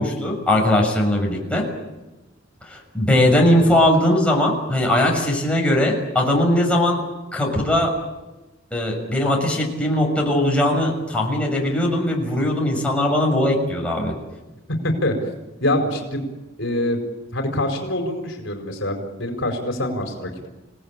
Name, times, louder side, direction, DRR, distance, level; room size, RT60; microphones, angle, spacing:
voice 1, 0.0-1.6 2.7-7.0 7.3-7.9 8.7-14.1, left 1 dB, 5° left, -1 dB, 6.4 m, -19 dB
voice 2, 14.8-15.1 15.6-16.3 16.6-17.0 17.3-20.5, left 1 dB, 65° left, 4 dB, 4.6 m, -24 dB
30.0 x 18.0 x 8.9 m, 1.1 s
head